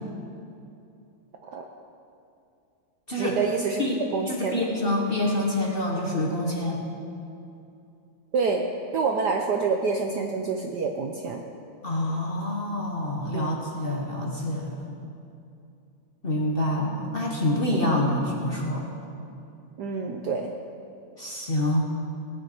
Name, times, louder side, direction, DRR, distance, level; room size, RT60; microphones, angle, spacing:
voice 1, 3.2-3.8 4.1-4.7 8.3-8.7 8.9-11.4 13.3-13.6 19.8-20.5, right 4 dB, 65° right, 3 dB, 1.0 m, -27 dB
voice 2, 4.3-6.8 11.8-14.9 16.2-18.8 21.2-21.9, left 1 dB, 30° left, -2 dB, 1.1 m, -26 dB
17.5 x 9.3 x 4.5 m, 2.7 s
omnidirectional pair, 2.4 m